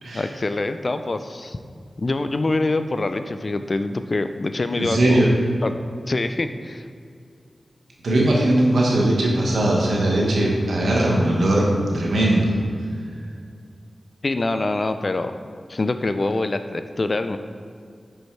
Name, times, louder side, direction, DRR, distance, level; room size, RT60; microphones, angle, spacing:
voice 1, 0.1-1.6 2.0-5.3 5.6-5.8 6.1-6.9 14.2-15.3 15.7-17.4, left 2 dB, 50° left, 9 dB, 0.4 m, -25 dB
voice 2, 4.7-5.3 8.0-11.7 11.9-12.6, right 1 dB, 90° right, -3 dB, 1.3 m, -19 dB
5.8 x 5.4 x 4.6 m, 2.3 s
cardioid pair, 50°, 0 cm